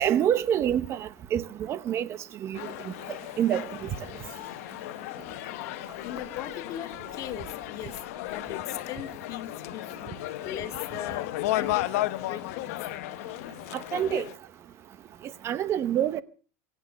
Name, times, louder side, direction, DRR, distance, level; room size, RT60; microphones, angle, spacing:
voice 1, 0.0-2.1 2.4-2.6 2.9-3.0 3.4-3.6 13.7-14.2 15.4-16.2, right 10 dB, 35° right, 0.9 m, -26 dB
sound 1, 2.5-14.3, left 17 dB, 75° left, 1.0 m, -35 dB
voice 2, 6.0-11.9 12.3-12.6, left 11 dB, 45° left, 2.2 m, -39 dB
24.0 x 8.8 x 6.8 m
supercardioid pair, 145°, 8 cm